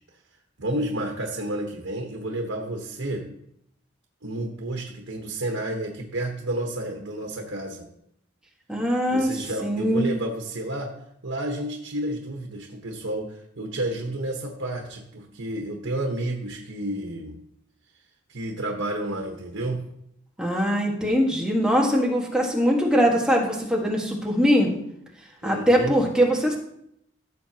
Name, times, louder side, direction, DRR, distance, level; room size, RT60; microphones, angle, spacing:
voice 1, 0.6-3.3 4.2-7.9 9.1-10.9 11.2-17.4 18.3-19.8 25.4-26.0, right 1 dB, 85° right, 2 dB, 1.2 m, -31 dB
voice 2, 8.7-9.3 9.6-10.1 20.4-24.7 25.4-26.6, equal, 5° right, -2 dB, 1.5 m, -22 dB
15.5 x 6.9 x 2.9 m, 0.75 s
head